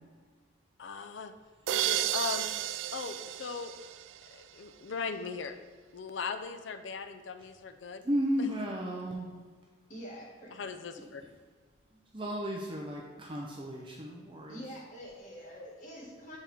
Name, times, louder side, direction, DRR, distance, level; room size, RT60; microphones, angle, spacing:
voice 1, 0.8-1.3 1.7-2.5 2.9-3.7 4.3-5.5 5.9-8.1 8.4-8.5 10.5-11.2, left 5 dB, 75° left, 9 dB, 0.5 m, -39 dB
sound 1, 1.7-4.5, right 12 dB, 85° right, 0.3 m, -33 dB
voice 2, 8.0-9.3 12.1-14.6, equal, 30° right, -1 dB, 0.6 m, -34 dB
voice 3, 9.9-10.8 14.5-16.4, equal, 45° left, -4 dB, 1.8 m, -46 dB
8.1 x 4.3 x 3.5 m, 1.5 s
head